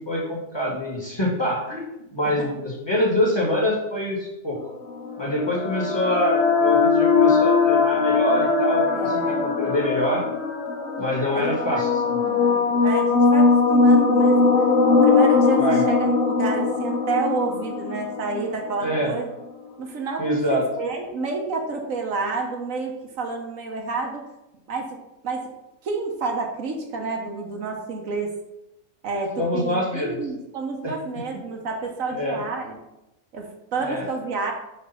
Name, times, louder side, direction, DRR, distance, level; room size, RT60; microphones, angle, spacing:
voice 1, 0.0-4.6 5.2-10.2 11.0-12.2 15.6-15.8 18.8-19.1 20.2-20.7 29.4-30.1 30.8-30.9 32.1-32.4 33.8-34.1, left 1 dB, 20° left, -4 dB, 1.6 m, -25 dB
voice 2, 2.2-2.5 8.9-9.5 11.3-11.8 12.2-14.6 14.9-19.3 19.8-24.2 24.7-25.0 25.2-25.5 25.8-28.3 29.0-32.8 33.3-34.5, right 4 dB, 75° right, 2 dB, 1.3 m, -29 dB
sound 1, 4.8-19.0, left 4 dB, 60° left, 1.1 m, -20 dB
5.2 x 3.5 x 5.6 m, 0.90 s
omnidirectional pair, 1.4 m